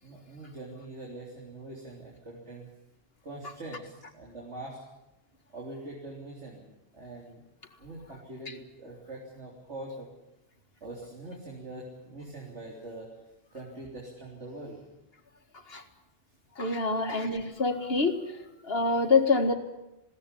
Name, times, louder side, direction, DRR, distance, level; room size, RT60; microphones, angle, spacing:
voice 1, 0.0-2.7 3.2-4.9 5.5-7.4 7.8-10.1 10.8-13.2 13.5-14.9 16.9-17.3, right 2 dB, 75° right, -2 dB, 4.0 m, -43 dB
voice 2, 16.6-18.1 18.6-19.6, left 3 dB, 55° left, 6 dB, 2.2 m, -25 dB
21.0 x 17.5 x 10.0 m, 0.93 s
omnidirectional pair, 1.2 m